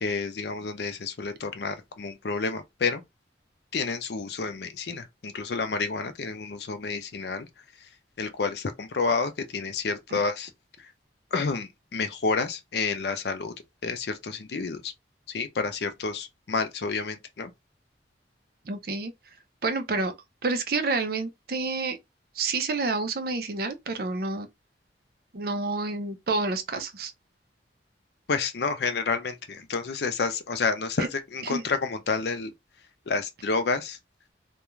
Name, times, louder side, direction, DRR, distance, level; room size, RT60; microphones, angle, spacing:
voice 1, 0.0-3.0 3.7-7.5 8.2-10.5 11.3-13.5 13.8-14.9 15.3-17.5 28.3-32.5 33.1-34.0, left 4 dB, 65° left, 0.5 m, -29 dB
voice 2, 18.7-19.1 19.6-20.1 20.4-22.0 22.4-24.5 25.3-27.1 31.0-31.1 31.4-31.6, right 3 dB, 55° right, 0.5 m, -29 dB
2.4 x 2.2 x 3.0 m
head